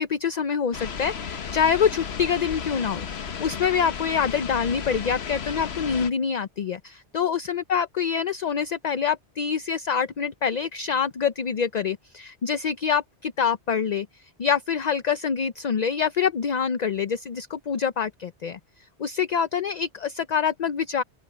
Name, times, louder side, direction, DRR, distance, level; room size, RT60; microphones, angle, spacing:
voice 1, 0.0-3.1 3.4-14.1 14.4-18.6 19.0-21.0, left 7 dB, 45° left, 0.6 m, -25 dB
sound 1, 0.7-6.1, left 6 dB, 70° left, 1.3 m, -34 dB
open air
omnidirectional pair, 1.1 m